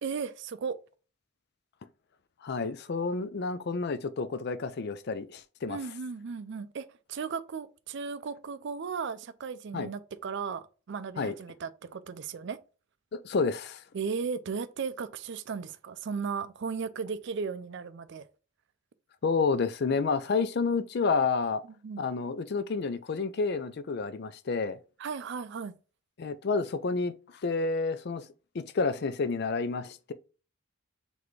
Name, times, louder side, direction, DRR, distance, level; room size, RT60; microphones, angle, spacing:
voice 1, 0.0-0.8 5.7-12.6 13.9-18.3 21.8-22.0 25.0-25.7, right 5 dB, 55° right, 0.4 m, -36 dB
voice 2, 2.4-5.8 9.7-9.9 11.2-11.3 13.1-13.8 19.2-21.6 22.0-24.8 26.2-28.3 28.5-30.1, left 4 dB, 50° left, 0.4 m, -30 dB
4.1 x 3.3 x 3.2 m
head